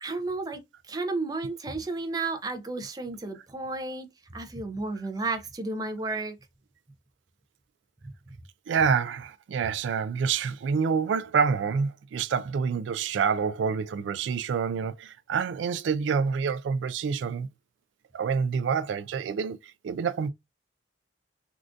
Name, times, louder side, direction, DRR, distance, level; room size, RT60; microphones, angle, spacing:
voice 1, 0.0-6.4, right 3 dB, 20° right, 0.5 m, -33 dB
voice 2, 8.7-17.5 18.1-19.6 19.8-20.3, right 6 dB, 85° right, 0.3 m, -27 dB
3.6 x 2.4 x 2.4 m
head